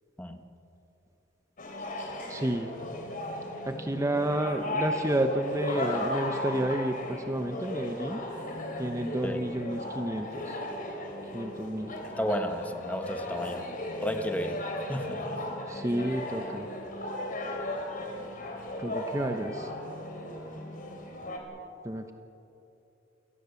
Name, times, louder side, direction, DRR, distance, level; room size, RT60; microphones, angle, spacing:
sound 1, 1.6-21.4, left 1 dB, 45° left, 3.8 m, -36 dB
voice 1, 2.3-2.7 3.7-8.3 8.8-10.6 11.3-12.0 15.7-16.7 18.8-19.7 21.8-22.1, right 1 dB, 15° right, 5 dB, 0.9 m, -30 dB
voice 2, 12.2-13.6 14.0-14.6 14.9-15.3, equal, 10° left, 6 dB, 1.4 m, -32 dB
28.0 x 19.0 x 7.1 m, 2.8 s
head